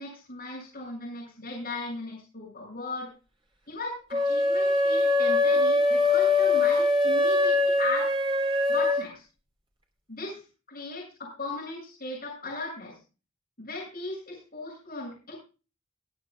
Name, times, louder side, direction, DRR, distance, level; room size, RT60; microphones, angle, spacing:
voice 1, 0.0-3.1 3.7-8.1 8.7-9.2 10.1-13.0 13.6-15.3, left 2 dB, 40° left, -4 dB, 7.2 m, -37 dB
sound 1, 4.1-9.1, left 2 dB, 25° right, 3.5 m, -23 dB
24.0 x 9.9 x 2.3 m, 0.33 s
head